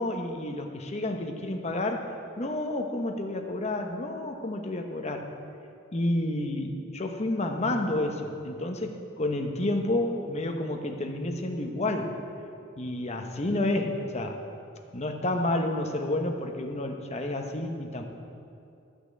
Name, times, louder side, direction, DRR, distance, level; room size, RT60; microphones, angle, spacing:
voice 1, 0.0-5.3 5.9-12.2 12.8-14.4 14.9-18.0, left 1 dB, 35° left, 4 dB, 1.0 m, -30 dB
12.0 x 5.8 x 8.2 m, 2.6 s
head